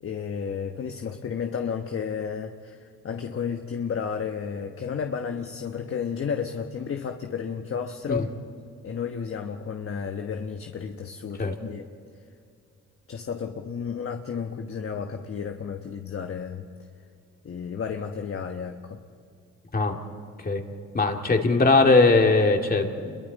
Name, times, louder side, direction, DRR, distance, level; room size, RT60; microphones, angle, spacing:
voice 1, 0.0-8.3 8.8-11.8 13.1-16.7 17.4-19.0, left 6 dB, 45° left, 5 dB, 1.3 m, -32 dB
voice 2, 20.9-23.2, left 3 dB, 30° left, 3 dB, 2.5 m, -20 dB
28.5 x 23.0 x 4.1 m, 2.4 s
cardioid pair, 90°, 30 cm